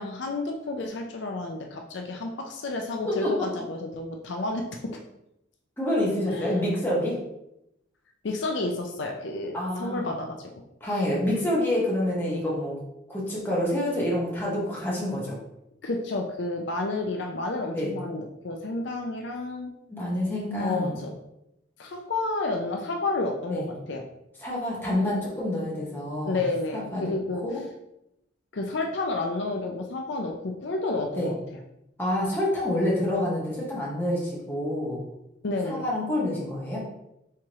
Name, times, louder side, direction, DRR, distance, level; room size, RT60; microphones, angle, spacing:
voice 1, 0.0-4.6 6.3-6.6 8.2-10.5 10.9-11.1 15.8-19.7 20.6-21.1 21.8-24.0 26.3-27.4 28.5-31.3 35.4-35.8, left 2 dB, 65° left, 2 dB, 0.5 m, -30 dB
voice 2, 3.0-3.5 5.8-7.2 9.5-10.1 10.8-12.8 13.1-15.4 17.7-17.9 19.9-21.0 23.5-23.6 24.4-26.4 26.7-27.1 27.4-27.6 31.1-31.3 32.0-35.0 35.6-36.8, left 1 dB, 10° left, -6 dB, 1.3 m, -27 dB
4.5 x 3.6 x 3.0 m, 0.84 s
head